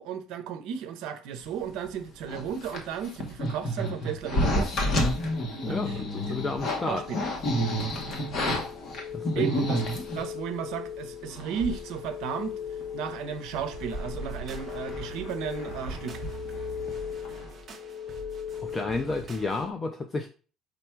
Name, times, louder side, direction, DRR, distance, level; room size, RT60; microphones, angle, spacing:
voice 1, 0.0-4.7 5.7-6.4 6.9-7.2 9.3-9.8 10.1-12.5 12.9-16.2, right 8 dB, 70° right, 0.6 m, -34 dB
sound 1, 2.3-10.3 11.0-11.1 11.3-12.0 12.2-12.3 12.8-13.1 13.5-17.0 17.2-17.5, equal, 40° left, 1.0 m, -30 dB
sound 2, 4.6-19.7, left 8 dB, 75° left, 1.1 m, -40 dB
voice 2, 5.6-7.0 9.1-9.7 18.6-20.3, left 3 dB, 20° left, 0.3 m, -31 dB
sound 3, 13.7-19.7, right 6 dB, 30° right, 0.6 m, -45 dB
5.0 x 2.3 x 4.4 m
cardioid pair, 155°, 0 cm